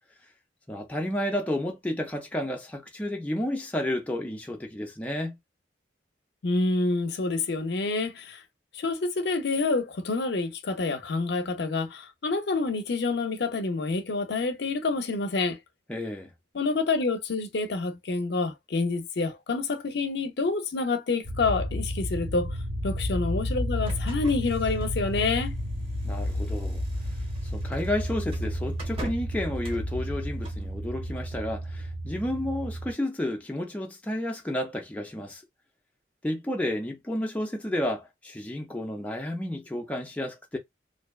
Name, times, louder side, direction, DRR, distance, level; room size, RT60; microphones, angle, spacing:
voice 1, 0.7-5.4 15.9-16.3 26.0-26.8 27.5-35.4 36.2-40.6, left 1 dB, 10° left, 0.4 m, -31 dB
voice 2, 6.4-8.4 8.7-15.6 16.5-22.6 22.8-25.6, left 3 dB, 60° left, 0.5 m, -28 dB
sound 1, 21.2-32.9, equal, 80° right, 1.4 m, -32 dB
sound 2, 23.8-30.7, right 1 dB, 30° right, 0.8 m, -46 dB
2.6 x 2.2 x 2.3 m
head